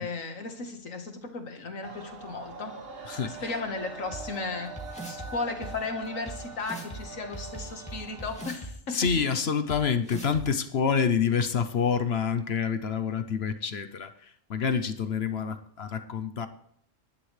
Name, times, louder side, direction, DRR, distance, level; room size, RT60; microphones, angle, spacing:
voice 1, 0.0-2.8 3.3-4.7 5.1-9.0, left 3 dB, 85° left, 2.0 m, -35 dB
Muezzin Calls, 1.8-8.5, right 4 dB, 50° right, 1.5 m, -43 dB
voice 2, 3.0-3.6 8.9-16.5, left 6 dB, 55° left, 1.0 m, -27 dB
sound 1, 4.1-4.2 4.8-5.3 5.6-5.7 6.3-6.4 6.6-7.0 7.3-8.7 9.0-9.1 9.7-9.8 10.1-10.4, right 2 dB, 5° left, 2.4 m, -39 dB
24.0 x 11.0 x 3.3 m
omnidirectional pair, 1.3 m